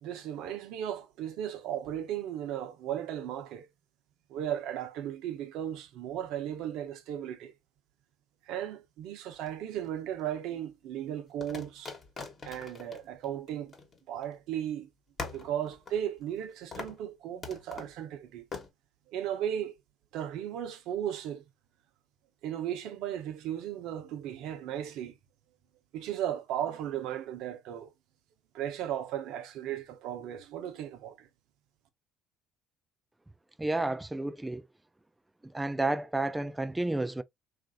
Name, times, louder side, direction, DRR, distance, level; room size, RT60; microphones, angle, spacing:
voice 1, 0.0-3.7 4.3-7.5 8.5-11.9 12.5-13.7 14.1-14.9 15.3-18.4 19.1-19.7 20.1-21.4 22.4-25.1 25.9-27.9 28.5-31.3, right 10 dB, 75° right, 0.6 m, -36 dB
sound 1, 9.3-10.2 11.4-14.4 14.6-14.7 15.2-16.4 16.7-17.0 17.4-18.0 18.5-18.7, left 4 dB, 35° left, 1.1 m, -43 dB
voice 2, 33.6-34.6 35.4-37.2, right 2 dB, 10° right, 0.3 m, -31 dB
3.0 x 2.5 x 2.5 m
supercardioid pair, 85°, 0 cm